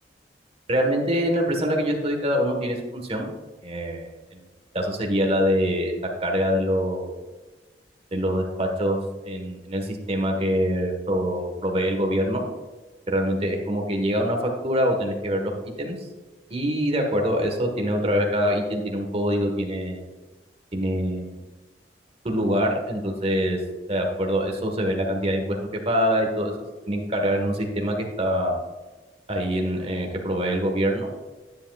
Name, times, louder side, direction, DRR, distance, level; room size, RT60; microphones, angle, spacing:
voice 1, 0.7-3.3 3.6-4.4 4.7-7.2 8.1-9.0 9.2-12.4 13.1-16.1 16.5-20.0 20.7-21.4 22.2-23.6 23.9-26.5 26.9-28.6 29.3-31.1, equal, 35° right, 2 dB, 1.4 m, -24 dB
10.5 x 9.8 x 2.4 m, 1.2 s
head